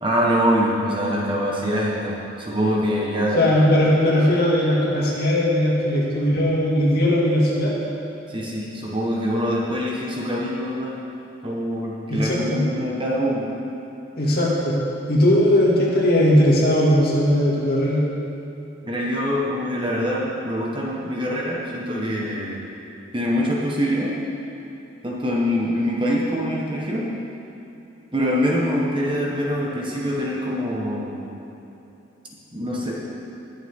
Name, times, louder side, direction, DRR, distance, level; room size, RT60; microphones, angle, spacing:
voice 1, 0.0-3.4 8.3-11.0 11.4-13.5 18.8-22.6 23.1-24.2 25.0-27.1 28.1-31.2 32.5-32.9, equal, 25° right, -4 dB, 1.4 m, -24 dB
voice 2, 3.3-7.7 12.1-12.6 14.2-14.8 15.1-18.0, left 1 dB, 50° left, -5 dB, 2.3 m, -18 dB
20.0 x 7.2 x 3.7 m, 3.0 s
head